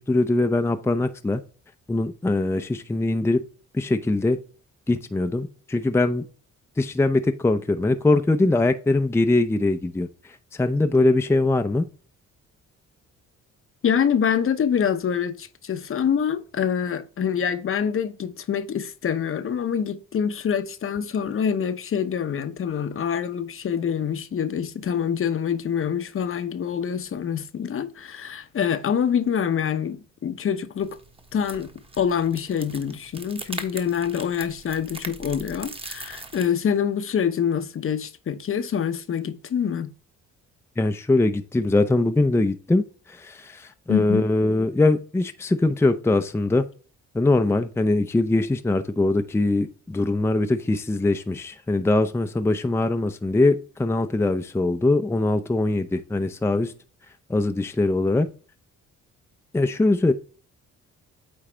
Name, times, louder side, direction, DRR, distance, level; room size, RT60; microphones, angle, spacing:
voice 1, 0.0-1.4 1.9-3.4 3.7-4.4 4.9-6.2 6.8-10.1 10.5-11.8 40.8-42.8 43.1-46.6 47.1-56.7 57.3-58.3 59.5-60.1, left 2 dB, 10° left, 0.5 m, -22 dB
voice 2, 13.8-31.0 31.3-31.7 32.0-39.9 43.9-44.3, left 7 dB, 45° left, 0.8 m, -25 dB
sound 1, 30.8-36.5, right 2 dB, 20° right, 1.2 m, -40 dB
8.7 x 4.0 x 3.3 m
cardioid pair, 90°, 30 cm